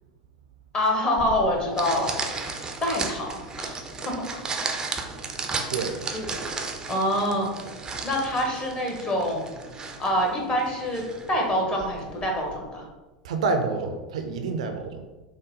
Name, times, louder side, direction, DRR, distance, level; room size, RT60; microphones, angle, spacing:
voice 1, 0.7-3.8 6.1-6.3 6.9-7.5 8.0-9.5 10.0-12.8, equal, 25° left, 0 dB, 1.2 m, -26 dB
sound 1, 1.2-12.6, right 4 dB, 15° right, 0.6 m, -35 dB
voice 2, 5.7-6.0 13.2-15.0, right 4 dB, 60° right, 6 dB, 0.5 m, -28 dB
6.1 x 2.2 x 3.8 m, 1.2 s
figure-of-eight pair, 85°, 4 cm